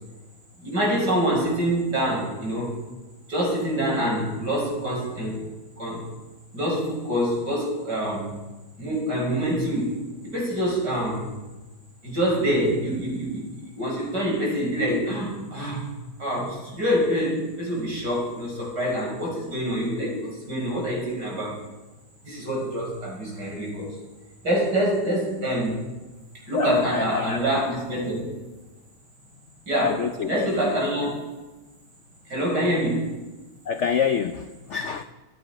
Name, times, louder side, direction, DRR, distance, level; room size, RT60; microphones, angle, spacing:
voice 1, 0.6-2.8 3.3-5.4 5.8-6.0 6.5-8.3 8.8-9.9 10.2-11.3 12.0-13.5 13.8-15.8 16.2-21.6 22.2-24.0 24.4-25.8 26.5-28.2 29.7-30.0 30.3-31.1 32.3-33.1, equal, 55° right, -3 dB, 7.1 m, -25 dB
voice 2, 26.5-27.4 29.7-30.5 33.7-35.0, left 7 dB, 75° left, 9 dB, 0.6 m, -26 dB
25.0 x 11.0 x 5.2 m, 1.1 s
omnidirectional pair, 2.1 m